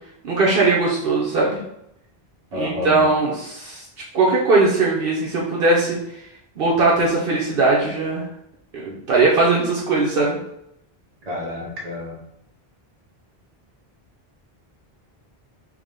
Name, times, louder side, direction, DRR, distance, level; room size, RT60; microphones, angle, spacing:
voice 1, 0.2-1.6 2.5-3.9 4.1-6.0 6.6-8.2 8.7-10.4, right 3 dB, 65° right, -4 dB, 0.9 m, -19 dB
voice 2, 2.5-3.0 11.3-12.1, left 2 dB, 40° right, -2 dB, 1.0 m, -29 dB
4.8 x 2.1 x 3.6 m, 0.79 s
omnidirectional pair, 1.0 m